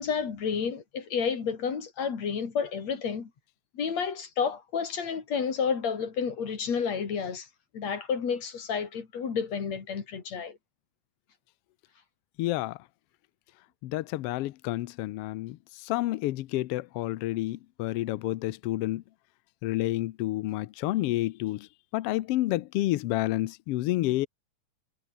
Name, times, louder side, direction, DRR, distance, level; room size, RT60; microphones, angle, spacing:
voice 1, 0.0-3.3 3.7-7.5 7.7-10.6, left 6 dB, 60° left, 4.3 m, -30 dB
voice 2, 12.4-12.8 13.8-19.0 19.6-21.7 21.9-24.3, left 16 dB, 85° left, 1.3 m, -29 dB
omnidirectional pair, 3.5 m